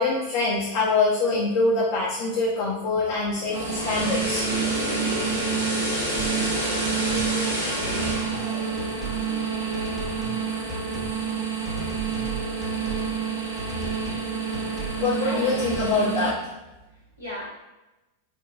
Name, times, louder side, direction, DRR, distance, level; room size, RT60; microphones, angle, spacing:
voice 1, 0.0-4.4 15.0-16.3, left 3 dB, 45° left, -5 dB, 0.5 m, -24 dB
sound 1, 3.4-9.6 9.9-10.1, equal, 85° right, 0.8 m, -30 dB
sound 2, 3.5-16.3, right 6 dB, 65° right, 0.4 m, -29 dB
sound 3, 6.1-6.6 6.9-7.3 7.8-8.5 8.8-9.3 9.7-10.4 10.7-11.2 11.6-13.1 13.6-14.3 14.5-15.0 15.5-15.9, right 2 dB, 10° right, 0.6 m, -35 dB
voice 2, 15.2-16.1 16.9-17.5, equal, 90° left, -8 dB, 1.2 m, -37 dB
3.2 x 2.0 x 2.2 m, 1.0 s
figure-of-eight pair, 90°, 0 cm